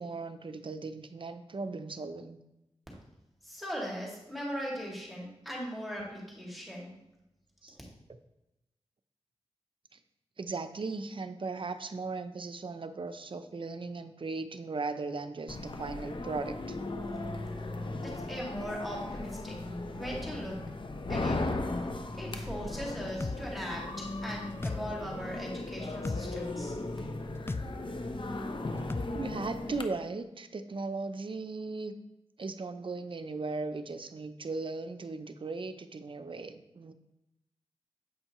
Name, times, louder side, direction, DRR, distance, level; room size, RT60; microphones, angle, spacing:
voice 1, 0.0-2.4 7.6-7.8 9.9-10.0 10.4-16.8 29.1-31.9 32.4-36.9, right 3 dB, 50° right, 9 dB, 0.6 m, -37 dB
voice 2, 3.4-6.9 7.7-7.8 18.0-19.6 19.9-20.6 21.1-21.4 22.1-26.7, equal, ahead, -3 dB, 2.1 m, -39 dB
sound 1, 15.5-29.8, left 2 dB, 45° left, 0.7 m, -37 dB
sound 2, 23.2-23.4 24.6-24.8 26.0-26.2 27.5-27.7 28.9-29.1, left 3 dB, 20° left, 0.4 m, -33 dB
8.0 x 5.5 x 3.0 m, 0.90 s
cardioid pair, 50°, 11 cm